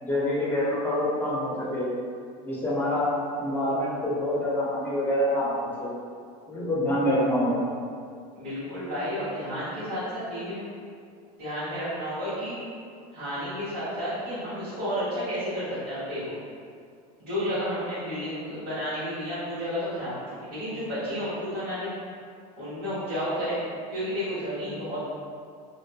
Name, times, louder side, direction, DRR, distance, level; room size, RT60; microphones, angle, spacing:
voice 1, 0.0-1.9 2.4-3.1 3.4-5.9 6.5-7.6, left 1 dB, 10° left, -6 dB, 0.6 m, -26 dB
voice 2, 8.3-10.6 11.4-12.6 13.1-16.4 17.2-21.9 22.6-23.6 23.9-25.0, equal, 75° right, -15 dB, 1.5 m, -31 dB
2.5 x 2.5 x 2.2 m, 2.3 s
supercardioid pair, 130°, 21 cm